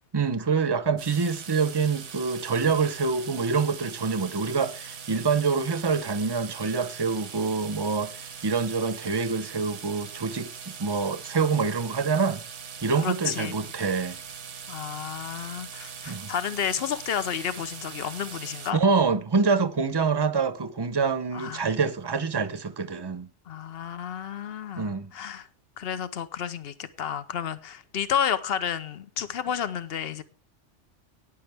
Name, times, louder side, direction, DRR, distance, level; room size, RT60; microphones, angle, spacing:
voice 1, 0.1-10.5 10.8-12.4 12.8-14.2 16.1-16.3 18.7-23.3 24.8-25.1, right 5 dB, 25° right, 0.8 m, -26 dB
sound 1, 1.0-18.7, right 6 dB, 80° right, 1.4 m, -41 dB
voice 2, 13.0-13.6 14.7-18.8 21.3-21.7 23.5-25.5 25.8-30.2, left 8 dB, 55° left, 1.1 m, -31 dB
15.0 x 10.0 x 3.5 m
omnidirectional pair, 1.2 m